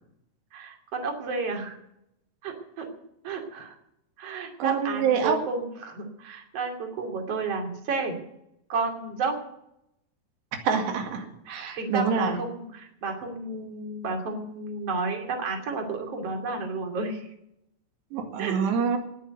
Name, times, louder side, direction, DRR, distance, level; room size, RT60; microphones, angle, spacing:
voice 1, 0.5-1.8 2.4-2.9 3.2-3.7 4.2-8.1 8.7-9.4 11.4-17.3 18.4-18.6, right 4 dB, 40° right, 2 dB, 3.2 m, -32 dB
voice 2, 4.6-5.4 10.6-12.4 18.1-19.0, right 6 dB, 85° right, 4 dB, 4.3 m, -26 dB
19.0 x 7.5 x 8.1 m, 0.81 s
omnidirectional pair, 4.8 m